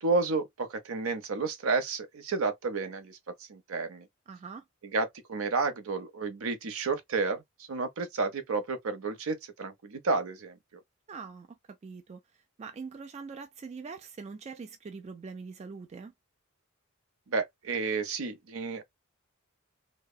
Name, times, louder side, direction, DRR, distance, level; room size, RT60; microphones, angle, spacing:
voice 1, 0.0-3.2 3.5-4.1 4.8-10.6 17.3-18.8, right 4 dB, 70° right, 0.7 m, -31 dB
voice 2, 4.3-4.6 11.1-12.2 12.6-16.1, right 5 dB, 30° right, 0.3 m, -43 dB
2.8 x 2.1 x 2.3 m
head